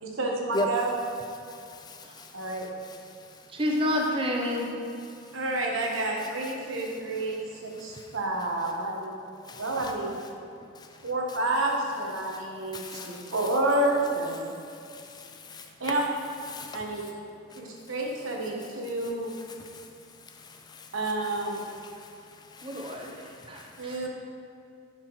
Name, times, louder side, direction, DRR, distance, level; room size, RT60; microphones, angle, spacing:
voice 1, 0.0-0.9 2.3-2.7 5.3-9.1 9.6-10.1 11.0-14.5 15.8-16.0 16.7-17.0 17.6-19.3 20.9-21.6 23.8-24.1, right 2 dB, 85° right, 0 dB, 1.2 m, -29 dB
voice 2, 1.7-3.4 6.4-6.5 7.2-7.3 7.8-8.1 9.5-9.9 10.8-10.9 12.3-12.4 12.7-13.3 14.7-15.9 16.5-16.8 17.5-17.6 19.0-19.9 20.3-20.9 21.6-23.8, left 2 dB, 20° left, 4 dB, 0.4 m, -40 dB
voice 3, 3.5-4.7 22.6-24.1, left 1 dB, 25° right, 0 dB, 0.8 m, -29 dB
10.0 x 5.8 x 3.1 m, 2.6 s
head